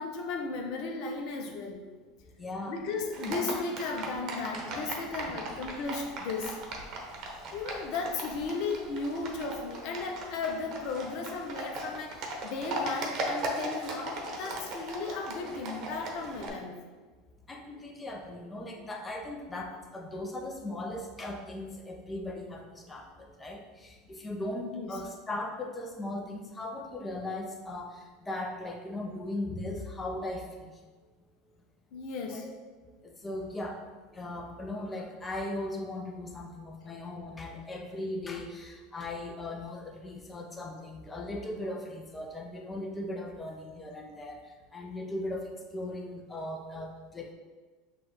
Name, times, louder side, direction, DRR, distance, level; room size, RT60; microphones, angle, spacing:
voice 1, 0.0-1.8 2.7-6.6 7.5-16.7 24.7-24.9 31.9-32.5, left 4 dB, 60° left, 3 dB, 0.7 m, -35 dB
voice 2, 2.4-2.8 3.2-3.6 5.3-5.4 17.5-30.7 32.3-32.5 33.0-33.8 34.1-44.4 44.7-47.3, left 1 dB, 20° left, 2 dB, 0.7 m, -38 dB
Livestock farm animals working animals, 3.1-16.5, right 1 dB, 55° right, 0.9 m, -38 dB
6.0 x 2.4 x 3.1 m, 1.4 s
supercardioid pair, 100°, 0 cm